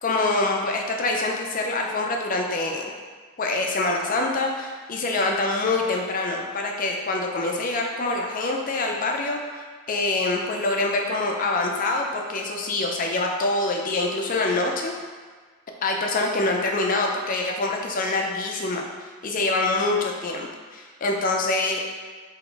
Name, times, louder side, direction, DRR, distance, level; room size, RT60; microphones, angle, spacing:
voice 1, 0.0-2.9 3.4-9.6 9.9-14.9 15.8-18.9 19.2-21.8, left 2 dB, 40° left, 1 dB, 0.5 m, -25 dB
3.8 x 3.0 x 4.7 m, 1.5 s
head